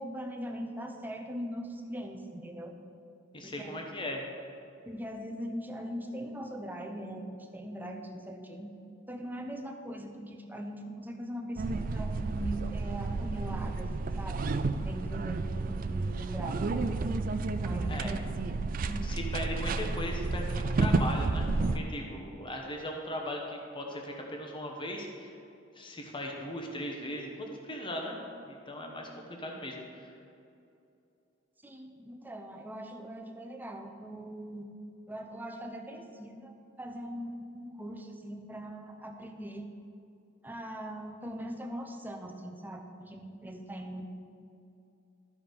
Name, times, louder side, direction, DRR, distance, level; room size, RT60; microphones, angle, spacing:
voice 1, 0.0-2.8 3.4-3.8 4.9-8.7 9.1-14.4 14.8-16.7 17.6-18.2 18.6-19.3 31.6-34.7 35.1-39.7 40.4-44.1, equal, 10° right, 3 dB, 0.7 m, -41 dB
voice 2, 3.3-4.2 17.9-18.2 19.0-25.3 25.7-28.2 28.5-30.1, left 1 dB, 25° left, 1 dB, 1.0 m, -38 dB
sound 1, 11.6-21.8, right 3 dB, 45° right, 0.4 m, -31 dB
13.0 x 4.9 x 5.1 m, 2.7 s
head